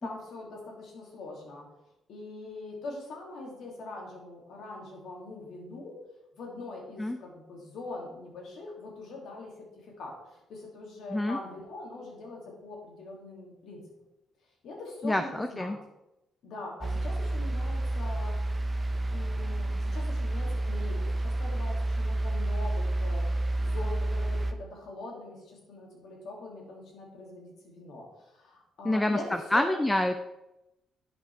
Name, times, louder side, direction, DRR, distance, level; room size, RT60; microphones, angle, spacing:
voice 1, 0.0-1.6 2.1-6.0 6.3-9.5 10.0-13.8 14.6-15.8 16.4-18.4 19.1-23.2 23.6-29.8, left 2 dB, 75° left, -1 dB, 2.6 m, -42 dB
voice 2, 15.0-15.8 28.8-29.2 29.5-30.2, left 1 dB, 10° left, 7 dB, 0.5 m, -26 dB
sound 1, 16.8-24.5, right 1 dB, 25° right, 0.8 m, -29 dB
8.7 x 5.5 x 4.7 m, 0.93 s
cardioid pair, 90°, 0 cm